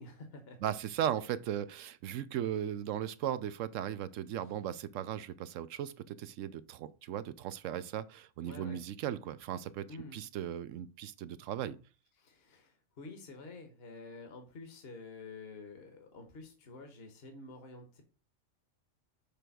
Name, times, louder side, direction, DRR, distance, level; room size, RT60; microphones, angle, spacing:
voice 1, 0.0-0.7 8.4-8.8 9.9-10.2 12.2-18.0, left 3 dB, 55° left, 1.4 m, -49 dB
voice 2, 0.6-9.9 10.1-11.8, right 10 dB, 85° right, 1.0 m, -37 dB
6.8 x 3.3 x 6.1 m
omnidirectional pair, 1.3 m